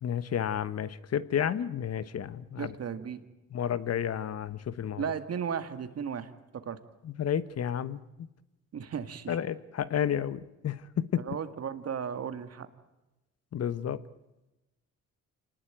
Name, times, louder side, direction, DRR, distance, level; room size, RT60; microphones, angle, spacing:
voice 1, 0.0-2.7 3.5-5.0 7.0-8.3 9.3-11.3 13.5-14.0, left 9 dB, 55° left, 15 dB, 1.2 m, -31 dB
voice 2, 2.6-3.2 5.0-6.8 8.7-9.4 11.2-12.7, right 7 dB, 55° right, 10 dB, 2.2 m, -35 dB
26.5 x 19.5 x 9.2 m, 1.0 s
cardioid pair, 90°, 30 cm